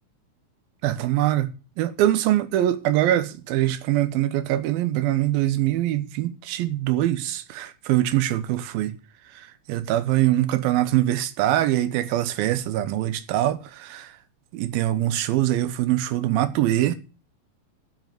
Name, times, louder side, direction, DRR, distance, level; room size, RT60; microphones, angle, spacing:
voice 1, 0.8-1.5 1.8-9.0 9.3-14.2 14.5-17.0, right 13 dB, 80° right, 2.6 m, -23 dB
10.5 x 7.6 x 7.7 m
omnidirectional pair, 4.2 m